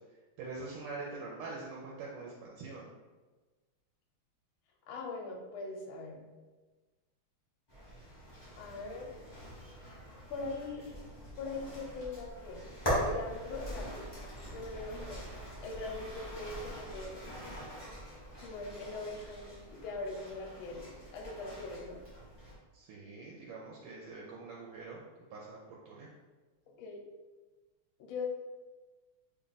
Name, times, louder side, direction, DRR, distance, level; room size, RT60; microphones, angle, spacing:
voice 1, 0.4-2.8 22.7-25.0 25.3-26.1, right 3 dB, 85° right, -3 dB, 1.5 m, -44 dB
voice 2, 4.9-6.2 8.6-9.2 10.3-10.9 11.4-14.0 14.5-15.2 15.6-17.1 18.4-20.9 21.1-22.0 26.8-27.0 28.0-28.2, left 3 dB, 75° left, 0 dB, 1.4 m, -41 dB
sound 1, 7.7-22.5, equal, 40° left, 0.3 m, -42 dB
3.5 x 2.3 x 3.9 m, 1.3 s
omnidirectional pair, 2.4 m